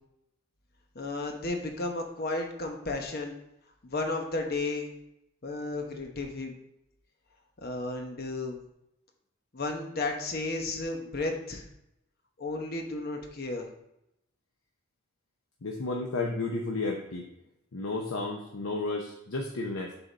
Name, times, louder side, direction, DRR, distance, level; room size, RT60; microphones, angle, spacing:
voice 1, 0.9-3.4 3.8-4.9 5.4-6.5 7.6-8.6 9.5-11.6 12.4-13.7, left 2 dB, 50° left, 3 dB, 0.9 m, -33 dB
voice 2, 15.6-17.3 17.7-19.9, left 3 dB, 80° left, 1 dB, 0.7 m, -32 dB
7.0 x 3.9 x 4.0 m, 0.84 s
head